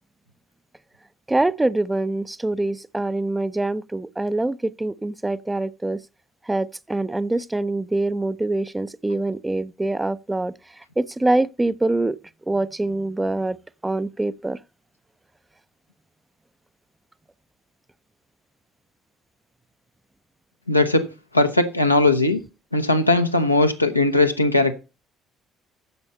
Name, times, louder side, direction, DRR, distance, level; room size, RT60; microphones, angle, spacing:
voice 1, 1.3-6.0 6.5-10.5 11.0-12.2 12.5-13.6 13.8-14.6, right 2 dB, 15° right, 0.5 m, -24 dB
voice 2, 20.7-21.1 21.3-22.4 22.7-24.7, left 2 dB, 90° left, 0.9 m, -19 dB
9.6 x 7.1 x 5.3 m
figure-of-eight pair, 50°, 0 cm